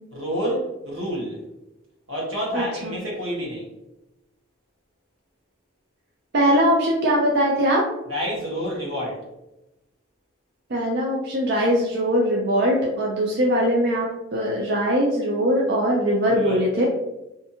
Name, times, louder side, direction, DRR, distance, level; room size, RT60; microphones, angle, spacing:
voice 1, 0.1-1.4 2.1-3.7 8.1-9.2 16.3-16.6, equal, 85° right, -3 dB, 1.1 m, -28 dB
voice 2, 2.5-2.9 6.3-7.8 10.7-16.8, equal, 55° right, -2 dB, 0.4 m, -21 dB
2.5 x 2.5 x 2.6 m, 0.95 s
head